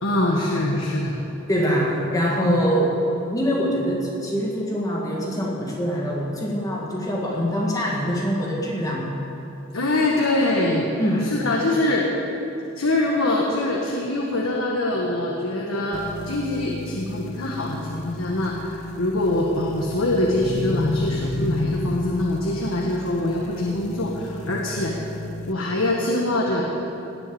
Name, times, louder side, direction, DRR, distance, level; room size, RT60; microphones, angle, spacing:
voice 1, 0.0-1.2 2.4-2.6 9.7-10.8 11.2-12.1 12.8-25.1 25.5-26.7, left 1 dB, 80° left, -2 dB, 1.6 m, -24 dB
voice 2, 1.5-3.0 3.3-9.2 11.0-11.4, equal, 15° left, -3 dB, 1.8 m, -24 dB
sound 1, 15.9-25.5, left 2 dB, 35° left, 0.4 m, -32 dB
18.0 x 7.3 x 8.7 m, 2.8 s
head